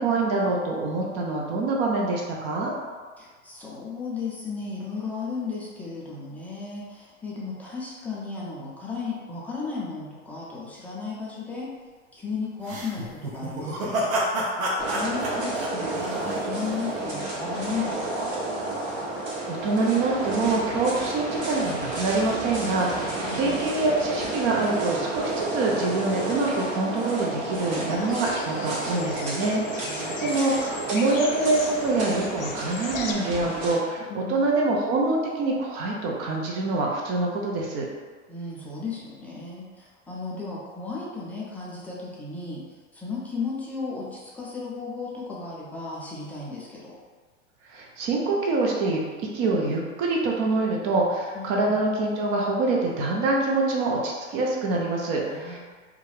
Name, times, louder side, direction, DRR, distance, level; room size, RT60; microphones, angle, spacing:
voice 1, 0.0-2.7 19.5-37.9 47.7-49.0 49.3-55.6, right 3 dB, 45° right, -2 dB, 0.7 m, -25 dB
voice 2, 3.2-11.7 12.1-14.2 14.9-18.3 23.2-23.7 29.8-30.4 34.0-34.5 38.3-42.6 42.9-46.9 51.3-51.8 55.3-55.6, left 4 dB, 5° left, -6 dB, 0.4 m, -35 dB
sound 1, 12.6-16.8, right 1 dB, 85° right, 0.7 m, -29 dB
sound 2, 14.8-33.7, right 2 dB, 60° right, 1.1 m, -31 dB
sound 3, 27.6-33.1, left 5 dB, 90° left, 0.5 m, -39 dB
2.4 x 2.3 x 3.2 m, 1.5 s
hypercardioid pair, 105°, 38 cm